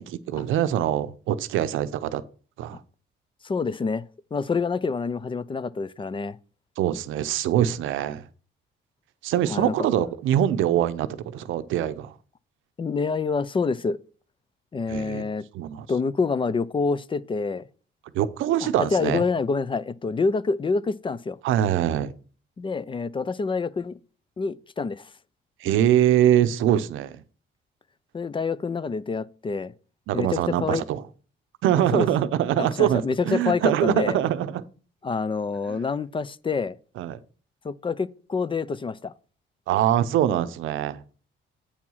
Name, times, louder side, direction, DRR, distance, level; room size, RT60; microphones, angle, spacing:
voice 1, 0.0-2.2 2.6-2.8 6.8-8.2 9.2-12.1 14.9-15.2 15.5-15.9 18.1-19.2 21.4-22.1 25.6-27.2 30.1-31.0 31.6-34.6 35.7-35.8 37.0-37.2 39.7-41.0, right 11 dB, 85° right, 0.7 m, -23 dB
voice 2, 3.4-4.0 4.3-6.4 9.5-9.7 12.8-14.0 14.7-15.4 15.9-17.6 18.6-21.4 22.6-24.0 24.4-25.0 28.1-29.7 30.1-30.8 31.9-32.1 32.6-34.2 35.0-36.8 37.6-39.1, left 4 dB, 25° left, 0.4 m, -27 dB
8.6 x 4.7 x 5.5 m
cardioid pair, 90°, 20 cm